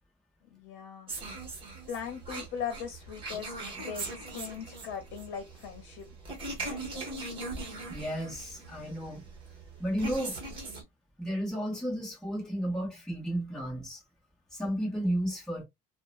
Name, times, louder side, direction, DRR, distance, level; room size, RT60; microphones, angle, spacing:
voice 1, 0.5-1.1 1.9-6.1 6.6-7.3, left 7 dB, 70° left, 0.8 m, -40 dB
sound 1, 1.1-10.8, right 2 dB, 25° right, 1.1 m, -40 dB
voice 2, 7.9-9.3 9.8-10.4 11.2-14.0 14.5-15.6, equal, 5° left, 1.0 m, -33 dB
2.8 x 2.1 x 2.4 m
cardioid pair, 165°, 19 cm